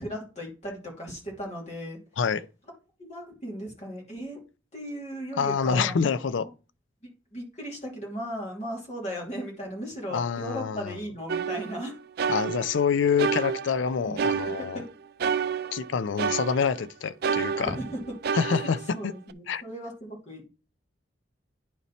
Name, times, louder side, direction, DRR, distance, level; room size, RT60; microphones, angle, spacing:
voice 1, 0.0-2.0 3.0-4.4 4.7-6.1 6.4-6.5 7.0-12.0 14.0-14.2 14.6-14.8 17.7-18.1 18.6-20.5, equal, 35° left, 2.8 m, -37 dB
voice 2, 5.4-6.5 10.1-10.9 12.3-14.8 15.7-17.7 18.3-18.8 19.0-19.1 19.5-19.6, left 6 dB, 75° left, 0.4 m, -26 dB
sound 1, 11.3-12.9 13.2-14.9 15.2-16.9 17.2-19.3, right 6 dB, 55° right, 0.4 m, -30 dB
10.5 x 4.1 x 4.1 m
head